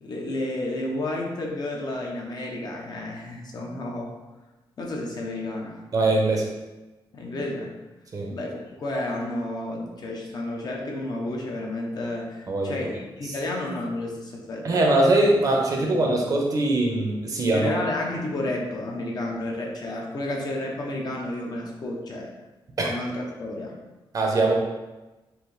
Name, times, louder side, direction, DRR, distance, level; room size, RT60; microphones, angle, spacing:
voice 1, 0.0-4.1 4.8-5.8 7.1-7.7 8.3-14.8 15.7-15.9 17.5-22.3 22.9-23.7, left 1 dB, 50° left, -1 dB, 0.7 m, -31 dB
voice 2, 5.9-6.4 8.1-8.3 12.5-12.7 14.6-17.7 22.8-22.9 24.1-24.5, right 2 dB, 40° right, 0 dB, 0.7 m, -21 dB
4.7 x 2.8 x 3.2 m, 1.1 s
wide cardioid pair, 160°, 9 cm